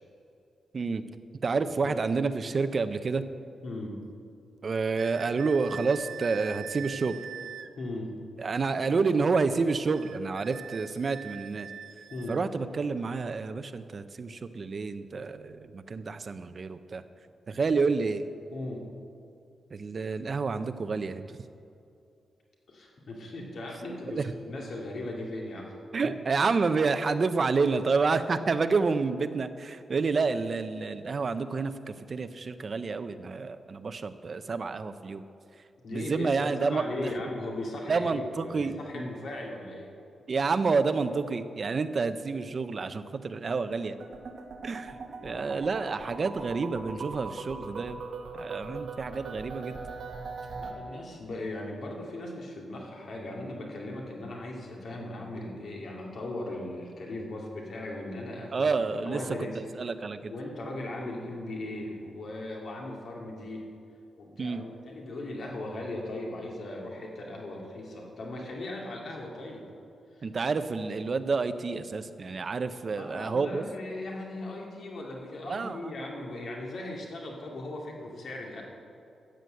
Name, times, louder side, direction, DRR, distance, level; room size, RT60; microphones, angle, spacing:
voice 1, 1.4-3.2 4.6-7.2 8.4-11.7 12.3-17.0 17.5-18.2 19.7-21.3 24.1-24.2 25.9-35.2 35.9-37.1 37.9-39.1 40.3-44.0 44.6-45.0 45.2-48.0 48.3-49.8 58.5-59.2 59.8-60.3 64.4-64.6 70.2-73.6 75.5-75.9, right 4 dB, 35° right, 10 dB, 0.5 m, -29 dB
voice 2, 3.6-4.0 7.8-8.1 12.1-12.4 18.5-18.9 22.7-25.8 35.8-39.9 45.1-45.6 50.5-59.6 60.3-63.7 64.2-69.7 70.2-70.3 72.9-78.6, left 1 dB, 55° left, -1 dB, 2.3 m, -38 dB
sound 1, 5.0-7.7 9.9-12.4, right 9 dB, 90° right, 0.5 m, -43 dB
sound 2, 44.0-50.7, right 4 dB, 55° right, 1.3 m, -40 dB
13.5 x 7.8 x 7.7 m, 2.6 s
wide cardioid pair, 175°, 0 cm